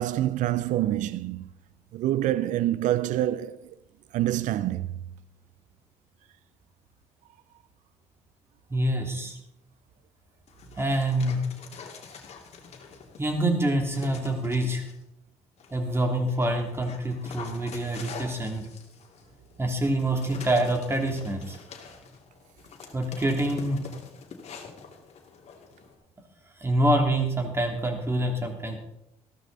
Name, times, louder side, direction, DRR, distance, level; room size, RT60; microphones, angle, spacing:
voice 1, 0.0-1.5 1.9-3.7 4.1-4.9, right 13 dB, 75° right, 0.5 m, -26 dB
voice 2, 8.7-9.4 10.8-11.4 13.2-14.8 15.7-18.6 19.6-21.6 22.9-23.9 26.6-28.8, right 1 dB, 20° right, 2.9 m, -26 dB
Dog, 10.5-13.4 13.9-15.0 15.6-25.9, left 5 dB, 55° left, 2.6 m, -45 dB
15.5 x 13.0 x 4.1 m
cardioid pair, 110°, 13 cm